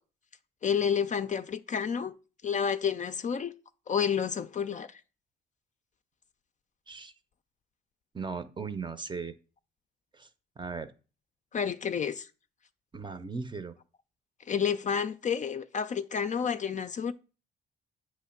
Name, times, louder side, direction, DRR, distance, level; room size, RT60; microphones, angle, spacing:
voice 1, 0.6-2.2 2.4-3.5 3.9-5.0 11.5-12.3 14.5-17.1, left 7 dB, 40° left, 0.4 m, -30 dB
voice 2, 8.1-9.4 10.1-10.3 10.6-10.9 12.9-13.8, right 4 dB, 25° right, 0.6 m, -37 dB
8.1 x 3.1 x 5.8 m
cardioid pair, 90°, 20 cm